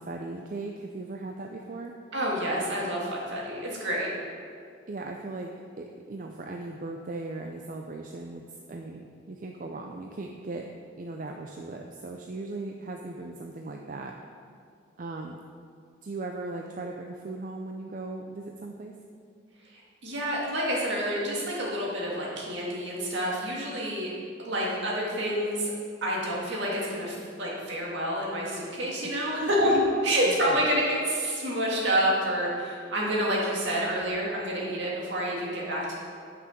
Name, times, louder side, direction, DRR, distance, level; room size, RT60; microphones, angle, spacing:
voice 1, 0.0-2.0 4.9-5.5 5.8-10.7 11.0-14.1 15.0-15.4 16.0-18.9 29.0-29.7 30.3-30.7, right 2 dB, 40° right, 2 dB, 0.4 m, -38 dB
voice 2, 2.1-4.1 20.0-24.1 24.4-25.7 26.0-35.9, equal, 65° right, -4 dB, 2.0 m, -28 dB
8.3 x 6.0 x 5.1 m, 2.3 s
head